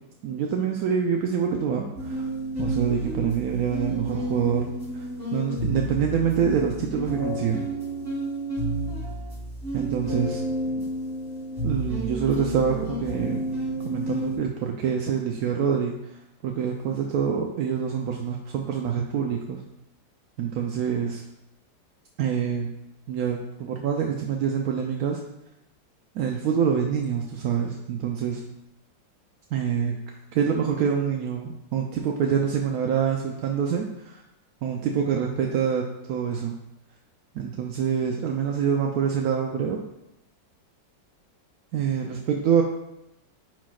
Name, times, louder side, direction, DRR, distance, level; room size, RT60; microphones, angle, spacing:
voice 1, 0.2-2.3 2.6-4.6 4.9-7.7 9.7-10.4 10.7-10.9 11.6-13.4 13.8-19.6 20.4-21.2 22.2-22.7 23.1-25.2 26.1-28.4 29.5-30.0 30.3-34.2 34.6-35.8 36.1-36.6 37.3-39.8 41.7-42.6, right 7 dB, 70° right, 1 dB, 0.9 m, -26 dB
sound 1, 1.9-14.4, right 1 dB, 30° right, 2.5 m, -30 dB
10.0 x 4.2 x 2.4 m, 0.86 s
omnidirectional pair, 2.0 m